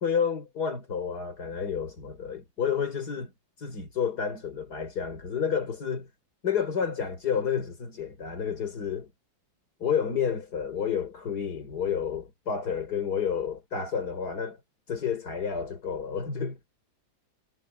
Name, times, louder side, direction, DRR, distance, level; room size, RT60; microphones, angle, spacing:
voice 1, 0.0-3.3 3.6-6.1 6.4-9.1 9.8-14.6 14.9-16.6, left 7 dB, 50° left, 4.2 m, -30 dB
omnidirectional pair, 2.1 m